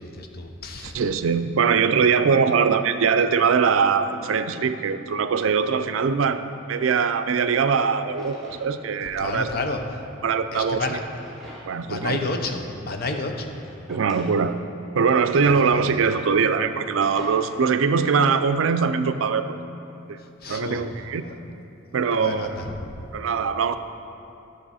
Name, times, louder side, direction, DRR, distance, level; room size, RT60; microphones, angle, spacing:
voice 1, 0.0-1.0 6.8-6.9 7.3-7.4 9.0-9.8 10.5-11.0 11.8-13.6 15.6-15.7 20.2-20.8 21.2-21.4 22.1-23.1, left 2 dB, 50° left, 4 dB, 0.7 m, -31 dB
voice 2, 0.8-9.5 10.2-11.0 11.7-12.2 13.9-14.5 14.9-19.5 20.1-20.2 20.5-21.3 21.9-22.5 23.1-23.8, right 5 dB, 75° right, 10 dB, 0.4 m, -22 dB
Drawer open or close, 6.6-6.7 7.3-8.7 9.0-9.1 10.2-11.9 12.3-12.4 13.2-14.3 15.5-17.2, equal, ahead, 2.3 m, -47 dB
11.5 x 6.3 x 4.1 m, 2.8 s
head